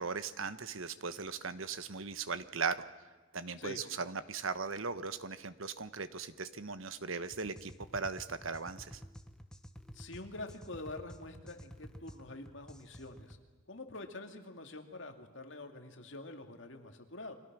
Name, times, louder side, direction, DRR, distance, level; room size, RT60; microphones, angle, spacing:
voice 1, 0.0-2.9 3.3-9.0, right 5 dB, 75° right, 12 dB, 1.2 m, -38 dB
sound 1, 7.3-13.4, equal, 5° left, 1.2 m, -51 dB
voice 2, 9.9-13.4 13.7-17.3, left 2 dB, 60° left, 5 dB, 2.5 m, -46 dB
30.0 x 24.0 x 6.2 m, 1.3 s
head